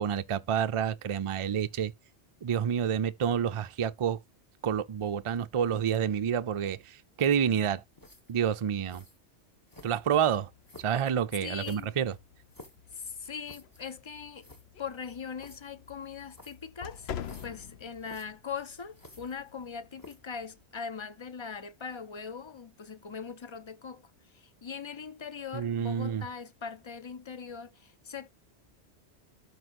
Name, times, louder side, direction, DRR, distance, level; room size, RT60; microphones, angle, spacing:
voice 1, 0.0-1.9 2.4-4.2 4.6-6.8 7.2-7.8 8.3-9.0 9.8-10.5 10.8-12.1 25.5-26.2, right 8 dB, 45° right, 0.4 m, -28 dB
sound 1, 8.0-8.4 8.9-9.2 9.7-10.2 10.6-11.0 11.6-12.9 13.4-13.8 14.1-14.2 14.4-14.6 15.4-15.6 16.3-16.7 17.2-17.6 18.0-18.3 18.9-19.6 20.0-20.3, left 1 dB, 20° left, 1.5 m, -52 dB
sound 2, 9.8-20.7, left 9 dB, 70° left, 0.9 m, -48 dB
voice 2, 11.4-11.9 12.9-14.5 14.8-17.1 17.4-24.0 24.6-28.3, left 6 dB, 40° left, 0.4 m, -40 dB
12.5 x 4.8 x 2.5 m
omnidirectional pair, 1.1 m